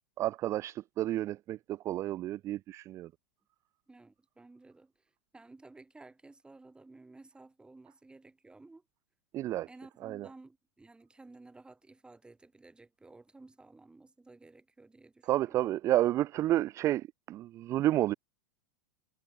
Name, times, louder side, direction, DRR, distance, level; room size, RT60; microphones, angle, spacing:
voice 1, 0.2-3.1 9.3-9.7 10.0-10.3 15.2-18.1, right 14 dB, 30° right, 0.4 m, -30 dB
voice 2, 3.9-4.9 5.3-8.8 9.7-15.7, right 3 dB, 10° right, 6.0 m, -55 dB
figure-of-eight pair, 90°, 10 cm